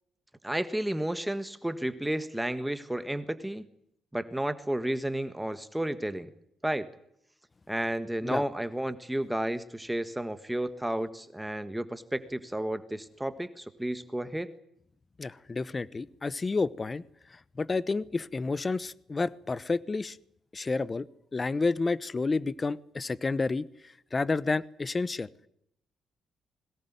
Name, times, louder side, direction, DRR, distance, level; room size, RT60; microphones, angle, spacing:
voice 1, 0.4-3.6 4.1-6.3 6.6-6.9 7.7-14.5, right 1 dB, 5° right, 12 dB, 1.5 m, -32 dB
voice 2, 15.2-17.0 17.6-20.2 20.5-21.1 21.3-23.7 24.1-25.3, left 3 dB, 25° left, 20 dB, 1.0 m, -30 dB
22.0 x 18.5 x 9.3 m, 0.73 s
cardioid pair, 90°, 0 cm